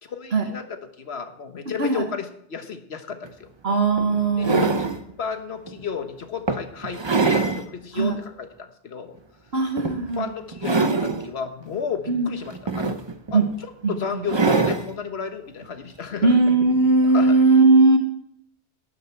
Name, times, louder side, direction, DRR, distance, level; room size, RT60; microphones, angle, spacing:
voice 1, 0.0-0.6 1.0-3.5 4.6-4.9 5.2-9.1 10.2-13.0 13.3-13.4 13.9-16.4 17.1-17.4, left 6 dB, 70° left, 8 dB, 1.4 m, -32 dB
sound 1, 3.2-3.3 4.0-5.0 5.7-5.8 6.5-7.6 8.1-8.2 9.8-10.2 10.5-11.3 12.4-13.3 14.3-14.9 16.3-16.4, right 4 dB, 30° right, 0.7 m, -23 dB
voice 2, 3.6-4.9 7.9-8.2 9.5-10.3 12.1-12.3 13.3-13.5 13.8-14.2 16.2-18.0, right 3 dB, 65° right, 4 dB, 1.6 m, -19 dB
12.0 x 11.0 x 4.4 m, 0.73 s
omnidirectional pair, 1.1 m